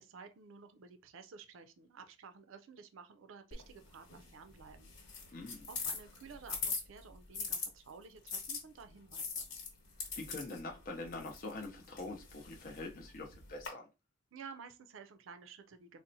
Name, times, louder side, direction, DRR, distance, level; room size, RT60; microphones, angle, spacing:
voice 1, 0.0-4.9 5.7-9.5 14.3-16.0, right 5 dB, 70° right, 0.4 m, -53 dB
sound 1, 3.5-7.7 8.3-13.7, left 5 dB, 70° left, 1.2 m, -43 dB
voice 2, 5.3-5.7 10.2-13.9, left 2 dB, 45° left, 0.5 m, -44 dB
4.0 x 2.1 x 2.6 m
head